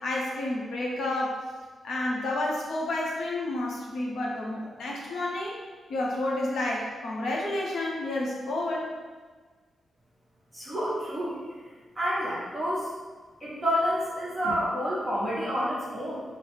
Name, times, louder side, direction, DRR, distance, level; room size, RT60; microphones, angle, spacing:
voice 1, 0.0-1.4 1.8-5.6 5.9-8.9, left 1 dB, 75° left, -3 dB, 0.7 m, -30 dB
voice 2, 10.5-11.4 11.9-12.9 13.4-16.2, equal, 10° right, -9 dB, 1.1 m, -29 dB
3.8 x 2.0 x 3.2 m, 1.4 s
wide cardioid pair, 160°, 0 cm